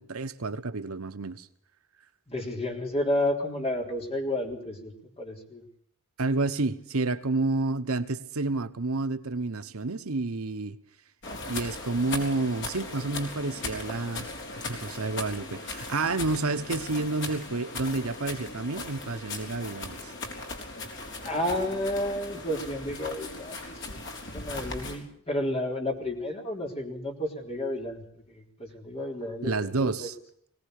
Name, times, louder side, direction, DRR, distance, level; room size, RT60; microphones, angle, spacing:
voice 1, 0.0-1.5 6.2-10.8 11.5-20.1 29.4-30.1, right 3 dB, 70° right, 10 dB, 1.1 m, -30 dB
voice 2, 2.3-5.6 21.2-24.0 24.3-30.1, left 1 dB, 25° left, 2 dB, 3.9 m, -31 dB
sound 1, 11.2-25.0, left 3 dB, 55° left, 4.5 m, -38 dB
22.0 x 18.0 x 6.5 m, 0.65 s
head